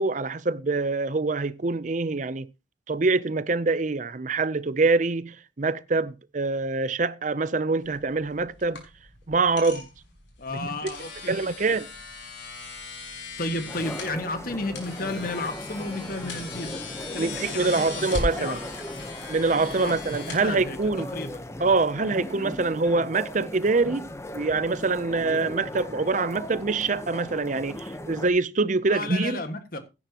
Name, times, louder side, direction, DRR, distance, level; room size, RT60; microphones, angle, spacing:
voice 1, 0.0-2.5 2.9-8.8 9.3-9.9 10.5-10.9 11.3-11.9 17.2-18.6 19.3-21.1 21.6-29.4, right 3 dB, 40° right, 0.6 m, -25 dB
sound 1, 7.8-21.1, left 3 dB, 75° left, 5.5 m, -38 dB
voice 2, 10.4-11.4 11.7-11.8 13.2-18.7 19.7-20.0 20.2-20.8 21.1-21.4 28.9-29.8, left 2 dB, 50° left, 1.8 m, -33 dB
sound 2, 13.7-28.3, left 1 dB, 15° left, 0.9 m, -38 dB
16.5 x 10.0 x 3.0 m
head